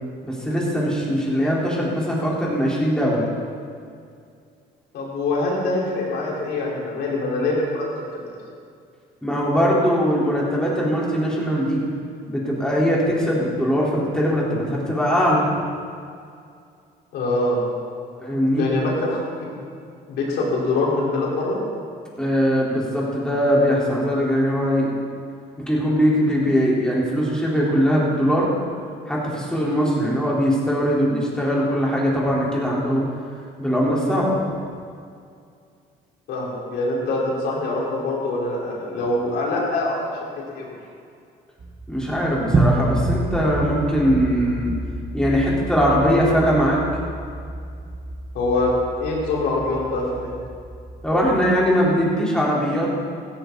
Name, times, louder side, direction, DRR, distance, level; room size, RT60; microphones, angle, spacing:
voice 1, 0.2-3.3 9.2-11.8 12.3-15.5 18.2-18.7 22.2-24.9 25.6-28.5 29.1-33.1 33.6-34.4 41.9-44.7 45.1-46.8 51.0-52.9, equal, 5° left, -5 dB, 4.2 m, -21 dB
voice 2, 4.9-7.8 8.2-8.4 17.1-17.6 18.6-19.2 20.1-21.6 36.3-40.1 40.5-40.7 48.3-48.7 49.0-50.3, left 2 dB, 75° left, -4 dB, 4.6 m, -24 dB
sound 1, 41.6-51.7, right 2 dB, 35° right, 1.7 m, -28 dB
16.0 x 14.0 x 4.2 m, 2.3 s
cardioid pair, 110°, 17 cm